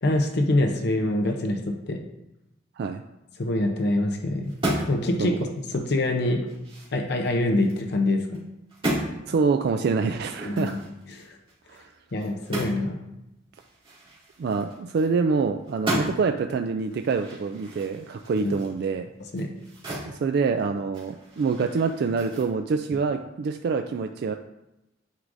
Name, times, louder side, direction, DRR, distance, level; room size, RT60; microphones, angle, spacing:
voice 1, 0.0-2.0 3.4-4.5 4.9-5.5 5.7-6.5 6.9-8.4 10.5-10.8 11.1-11.4 12.1-13.0 15.9-16.0 18.4-18.5 19.3-19.5, left 1 dB, 60° left, 3 dB, 0.6 m, -25 dB
sound 1, 4.4-5.1 5.5-5.6 6.1-7.8 8.2-8.4 8.7-9.1 10.2-12.9 13.1-13.2 13.5-15.4 15.6-16.4 16.9-20.1 20.5-22.4, right 1 dB, 30° right, 2.2 m, -34 dB
voice 2, 9.3-10.8 11.7-11.9 14.4-19.1 20.1-24.3, right 5 dB, 60° right, 6 dB, 0.3 m, -26 dB
9.5 x 4.7 x 2.6 m, 0.92 s
head